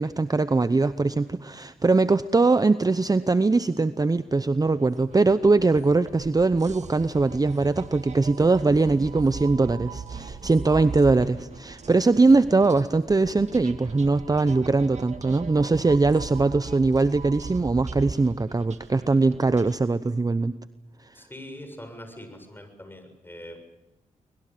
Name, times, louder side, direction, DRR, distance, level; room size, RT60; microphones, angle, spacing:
voice 1, 0.0-20.5, right 3 dB, 25° right, 13 dB, 0.8 m, -21 dB
sound 1, 4.7-19.7, right 5 dB, 50° right, 1.9 m, -39 dB
voice 2, 21.1-23.6, left 1 dB, 15° left, 7 dB, 7.0 m, -43 dB
24.0 x 21.5 x 7.6 m, 1.0 s
cardioid pair, 55°, 15 cm